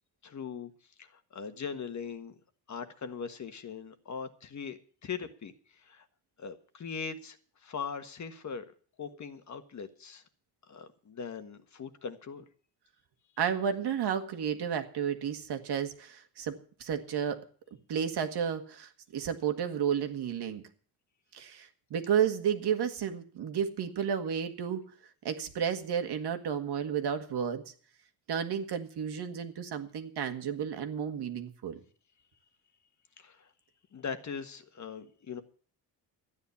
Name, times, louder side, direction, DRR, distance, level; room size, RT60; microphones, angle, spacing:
voice 1, 0.2-0.7 1.0-2.3 2.7-5.5 5.8-6.0 6.4-7.4 7.6-8.6 9.0-10.2 10.7-12.4 33.2-33.5 33.9-35.4, left 6 dB, 40° left, 8 dB, 1.4 m, -40 dB
voice 2, 13.4-17.5 17.9-20.6 21.3-24.8 25.2-27.6 28.3-31.8, right 8 dB, 60° right, 7 dB, 1.9 m, -32 dB
12.5 x 9.6 x 7.0 m, 0.44 s
cardioid pair, 115°, 45 cm